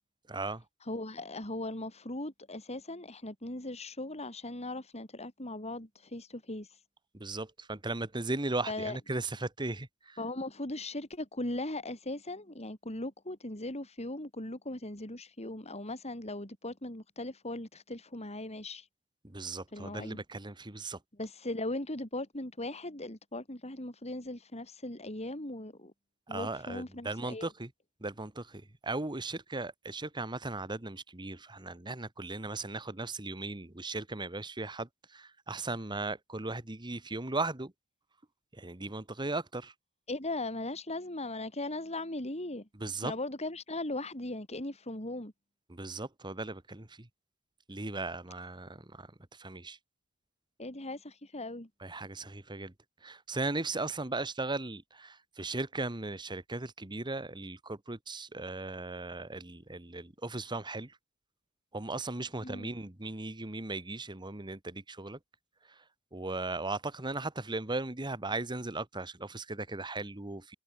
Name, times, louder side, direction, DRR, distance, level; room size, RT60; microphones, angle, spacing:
voice 1, 0.3-0.6 7.1-10.2 19.2-21.0 26.3-27.7 28.0-37.7 38.5-39.7 42.8-43.1 45.7-47.1 47.7-49.8 51.8-52.7 53.0-61.0 61.7-65.2 65.7-65.8 66.1-70.5, right 2 dB, 20° right, 1.5 m, -37 dB
voice 2, 0.9-6.7 8.7-9.0 10.2-18.9 19.7-20.2 21.2-25.9 26.3-27.5 40.1-42.7 43.0-45.3 50.6-51.7 62.4-62.7, left 2 dB, 30° left, 5.0 m, -38 dB
head